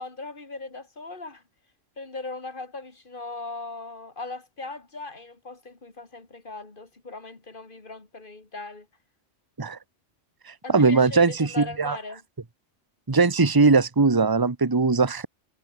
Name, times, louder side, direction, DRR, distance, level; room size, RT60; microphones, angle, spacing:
voice 1, 0.0-1.4 2.0-8.9 10.6-12.2, left 3 dB, 45° left, 3.0 m, -39 dB
voice 2, 10.7-12.0 13.1-15.3, right 4 dB, 20° right, 1.1 m, -20 dB
omnidirectional pair, 1.2 m